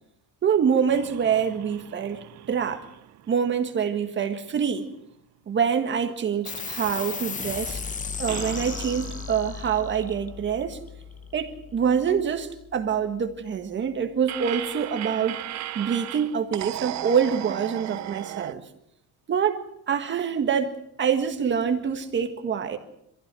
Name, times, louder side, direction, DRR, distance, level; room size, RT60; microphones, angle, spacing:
voice 1, 0.4-2.8 3.3-4.9 5.5-7.8 8.2-10.8 11.3-15.5 15.8-18.6 19.3-19.6 19.9-22.8, right 7 dB, 30° right, 1.8 m, -25 dB
sound 1, 0.9-4.4 4.7-4.8 8.3-11.4 14.3-18.5, right 14 dB, 50° right, 0.8 m, -37 dB
sound 2, 6.4-13.3, left 6 dB, 20° left, 1.0 m, -36 dB
26.0 x 15.5 x 7.7 m
cardioid pair, 170°, 37 cm